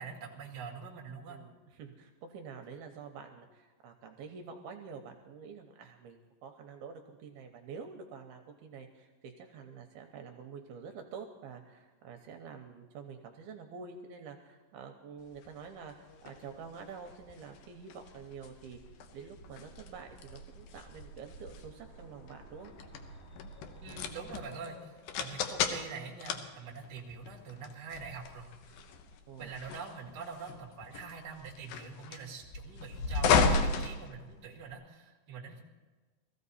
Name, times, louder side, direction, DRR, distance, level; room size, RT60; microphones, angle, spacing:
voice 1, 0.0-1.4 23.8-28.7 29.4-35.6, right 5 dB, 40° right, -1 dB, 1.7 m, -45 dB
voice 2, 1.3-18.8 19.1-22.7 29.3-29.5 30.0-30.2, right 6 dB, 75° right, 4 dB, 2.5 m, -48 dB
sound 1, 15.4-34.7, left 5 dB, 70° left, 2.3 m, -35 dB
sound 2, 16.8-24.4, right 2 dB, 55° left, 2.9 m, -54 dB
19.5 x 14.5 x 4.2 m, 1.3 s
omnidirectional pair, 4.9 m